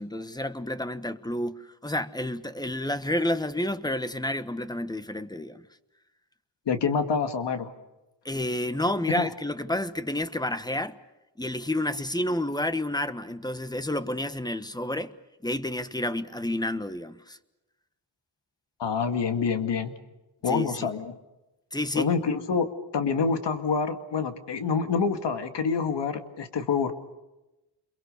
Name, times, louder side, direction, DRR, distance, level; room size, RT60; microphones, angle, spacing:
voice 1, 0.0-5.7 8.2-11.0 11.4-15.1 15.4-17.4 20.5-20.9 21.7-22.1, left 1 dB, 10° left, 1.2 m, -30 dB
voice 2, 6.7-7.7 9.2-9.3 18.8-19.9 20.4-21.1 22.0-22.7 22.9-26.9, left 5 dB, 70° left, 2.2 m, -27 dB
28.0 x 22.5 x 6.8 m
cardioid pair, 80°, 43 cm